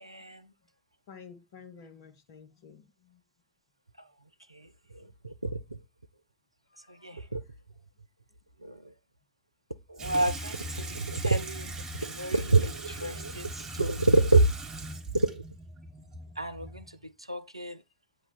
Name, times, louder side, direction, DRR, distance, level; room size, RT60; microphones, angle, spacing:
voice 1, 0.0-0.4 5.5-5.6 7.0-7.4 10.0-11.7 12.0-13.5 13.8-14.5 15.2-15.4 16.4-16.8 17.3-17.8, right 2 dB, 90° right, 0.4 m, -26 dB
voice 2, 1.1-3.2 6.7-7.2 13.3-13.5, left 6 dB, 60° left, 1.0 m, -51 dB
Water tap faucet / Sink (filling or washing), 10.0-17.0, right 2 dB, 20° right, 1.4 m, -40 dB
8.4 x 2.9 x 5.3 m
figure-of-eight pair, 75°, 3 cm